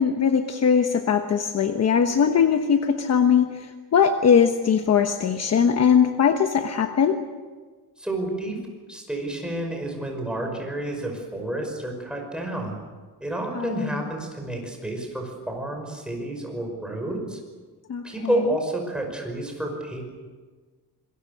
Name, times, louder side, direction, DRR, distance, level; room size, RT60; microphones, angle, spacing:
voice 1, 0.0-7.2 13.5-14.0 17.9-18.0, left 7 dB, 40° left, 6 dB, 1.2 m, -20 dB
voice 2, 8.0-8.6 8.9-12.8 13.2-17.4 18.0-20.0, right 1 dB, ahead, 1 dB, 5.6 m, -30 dB
26.5 x 22.0 x 6.7 m, 1.4 s
cardioid pair, 155°, 38 cm